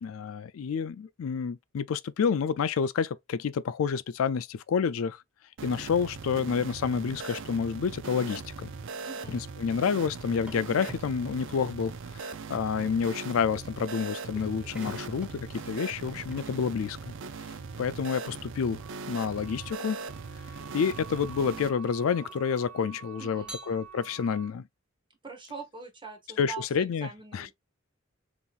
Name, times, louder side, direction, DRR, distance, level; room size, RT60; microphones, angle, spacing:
voice 1, 0.0-5.2 5.6-8.7 9.3-17.0 17.8-18.8 19.1-20.0 20.7-24.7 26.4-27.5, left 6 dB, 70° left, 0.4 m, -29 dB
Square Malfunction, 5.6-21.7, right 4 dB, 65° right, 0.5 m, -40 dB
voice 2, 9.0-9.4 23.2-23.6 25.2-26.6 27.0-27.5, right 5 dB, 25° right, 1.2 m, -43 dB
sound 1, 10.0-17.3 18.6-18.8 19.5-22.9 23.4-24.3, right 1 dB, 5° right, 0.8 m, -50 dB
Wind instrument woodwind instrument, 18.8-24.5, right 7 dB, 85° right, 1.4 m, -48 dB
5.2 x 3.0 x 2.4 m
head